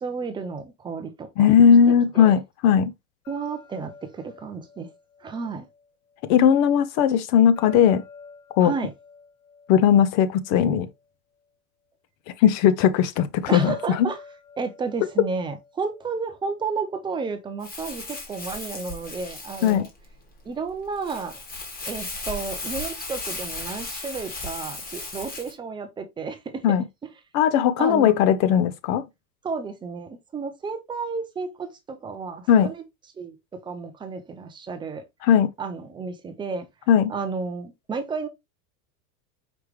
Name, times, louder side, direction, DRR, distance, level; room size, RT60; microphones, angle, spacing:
voice 1, 0.0-1.5 2.1-2.4 3.3-4.9 5.2-5.7 8.6-8.9 13.5-14.2 14.6-19.9 20.4-21.4 21.9-26.6 27.8-28.1 29.4-32.8 33.2-35.0 35.6-36.7 37.1-38.3, right 4 dB, 10° right, 0.4 m, -32 dB
voice 2, 1.4-2.9 6.3-8.0 8.6-8.7 9.7-10.9 12.4-14.1 19.6-19.9 26.6-26.8 27.3-29.0 32.5-32.7 35.2-35.5 36.9-37.1, left 8 dB, 40° left, 0.5 m, -18 dB
sound 1, 3.2-6.3 7.6-11.1 13.5-16.6, left 5 dB, 80° left, 3.3 m, -47 dB
Crumpling crinkling, 17.6-25.5, left 2 dB, 20° left, 1.5 m, -36 dB
5.1 x 3.2 x 3.1 m
supercardioid pair, 135°, 42 cm